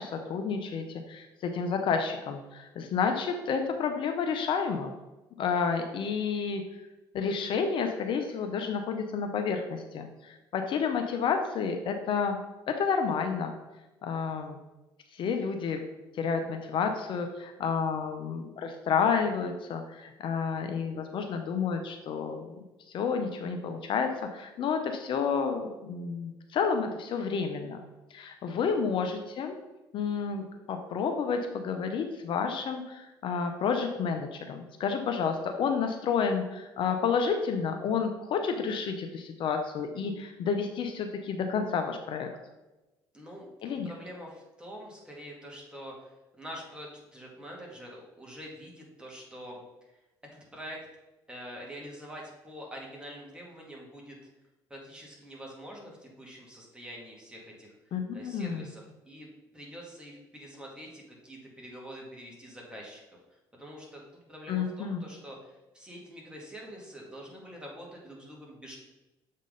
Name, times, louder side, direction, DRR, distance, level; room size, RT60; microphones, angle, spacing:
voice 1, 0.0-4.9 5.4-6.6 7.1-12.4 12.7-13.5 14.0-14.6 15.1-15.8 16.2-22.5 22.9-27.8 28.1-29.5 29.9-42.3 43.6-43.9 57.9-58.7 64.5-65.0, left 6 dB, 60° left, 5 dB, 0.7 m, -30 dB
voice 2, 28.5-29.0 43.1-50.0 50.3-50.8 51.3-54.2 54.7-63.0 63.3-68.8, equal, 10° right, -2 dB, 2.1 m, -46 dB
7.4 x 3.7 x 3.8 m, 1.0 s
supercardioid pair, 80°, 9 cm